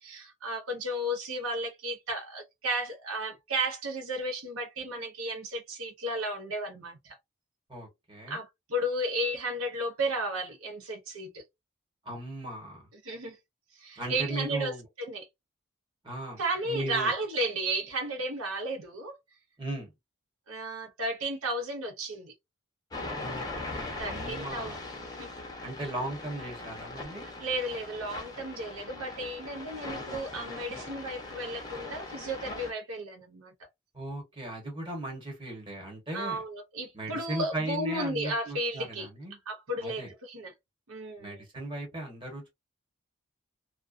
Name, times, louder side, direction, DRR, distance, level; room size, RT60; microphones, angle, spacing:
voice 1, 0.0-7.2 8.3-11.4 13.0-13.4 13.7-14.7 15.0-15.3 16.4-19.1 20.5-22.3 24.0-24.8 25.2-25.3 27.4-33.7 36.1-39.1 39.5-40.5 40.9-41.4, right 1 dB, 85° right, 0.7 m, -33 dB
voice 2, 7.7-8.4 12.0-12.9 14.0-14.8 16.0-16.4 16.6-17.1 19.6-19.9 23.2-23.4 23.7-24.8 25.6-27.2 33.9-36.4 36.9-39.4 39.8-40.1 41.2-42.5, right 1 dB, 25° right, 1.2 m, -37 dB
sound 1, 22.9-32.7, left 2 dB, 20° left, 0.6 m, -40 dB
2.4 x 2.2 x 2.4 m
head